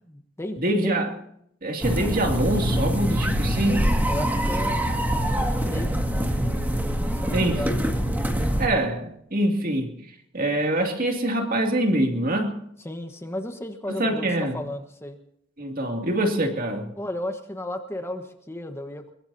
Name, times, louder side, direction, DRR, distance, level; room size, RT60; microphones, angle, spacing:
voice 1, 0.1-0.9 4.1-4.8 5.2-6.4 7.1-7.8 12.8-15.2 17.0-19.1, left 1 dB, 15° left, 6 dB, 1.3 m, -34 dB
voice 2, 0.6-1.1 1.6-3.9 7.3-7.6 8.6-9.9 10.3-12.6 13.9-14.6 15.6-16.9, right 1 dB, 45° right, 3 dB, 2.5 m, -24 dB
sound 1, 1.8-8.7, equal, 10° right, 1.9 m, -24 dB
22.5 x 22.0 x 2.8 m, 0.72 s
head